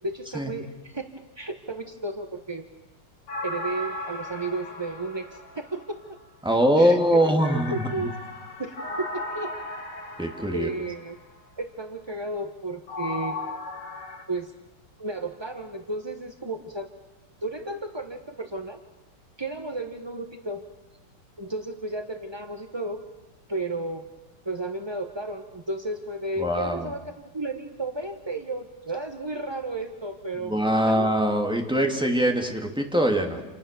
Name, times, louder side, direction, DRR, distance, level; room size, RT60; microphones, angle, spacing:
voice 1, 0.0-1.1 1.4-2.7 3.4-6.2 6.8-7.4 7.7-8.2 8.6-9.5 10.5-11.2 11.6-13.4 14.3-14.5 15.0-16.9 17.4-18.8 19.4-20.6 21.4-23.0 23.5-24.0 24.4-30.6 30.9-31.1, right 2 dB, 20° right, 6 dB, 0.7 m, -33 dB
sound 1, 3.3-6.1 7.4-11.2 12.9-14.2, left 2 dB, 70° left, 3.9 m, -36 dB
voice 2, 6.4-8.1 10.2-10.7 26.4-26.9 30.4-33.4, equal, ahead, 2 dB, 2.7 m, -23 dB
29.5 x 28.0 x 6.9 m, 1.0 s
omnidirectional pair, 2.4 m